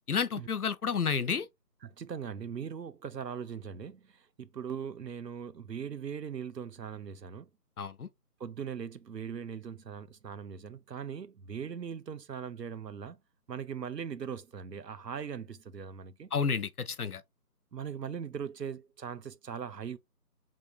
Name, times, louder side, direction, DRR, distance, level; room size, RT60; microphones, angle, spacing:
voice 1, 0.1-1.5 7.8-8.1 16.3-17.2, left 6 dB, 65° left, 0.7 m, -30 dB
voice 2, 1.8-7.5 8.4-13.2 13.5-16.3 17.7-20.0, right 7 dB, 85° right, 0.8 m, -40 dB
6.2 x 3.6 x 2.3 m
figure-of-eight pair, 165°, 48 cm